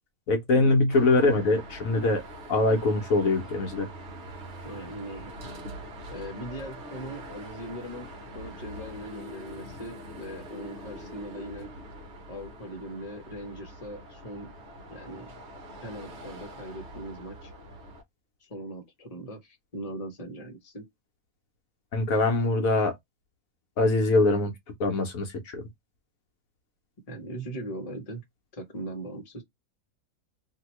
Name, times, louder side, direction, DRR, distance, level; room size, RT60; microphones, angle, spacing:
voice 1, 0.3-2.2 2.5-3.9 21.9-22.9 23.8-24.5 24.8-25.6, left 2 dB, 70° left, 1.2 m, -23 dB
Car passing by / Traffic noise roadway noise / Engine, 0.9-18.0, right 1 dB, 50° right, 1.3 m, -43 dB
voice 2, 4.6-5.3 6.1-11.7 12.3-14.5 14.9-15.3 15.8-17.5 18.4-20.9 27.1-28.2 28.5-29.4, right 1 dB, 25° left, 1.1 m, -40 dB
2.9 x 2.7 x 3.0 m
omnidirectional pair, 1.6 m